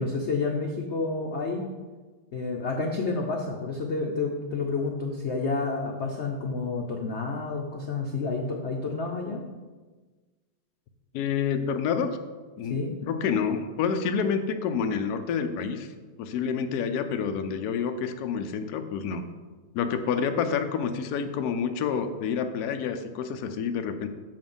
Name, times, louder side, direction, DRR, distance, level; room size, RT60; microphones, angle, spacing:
voice 1, 0.0-1.6 2.3-9.4 12.7-12.9, left 3 dB, 90° left, 1 dB, 0.6 m, -29 dB
voice 2, 11.1-12.2 12.6-12.8 13.0-15.9 16.2-19.3 19.7-24.1, left 6 dB, 70° left, 8 dB, 1.0 m, -28 dB
7.1 x 5.2 x 5.4 m, 1.3 s
omnidirectional pair, 2.1 m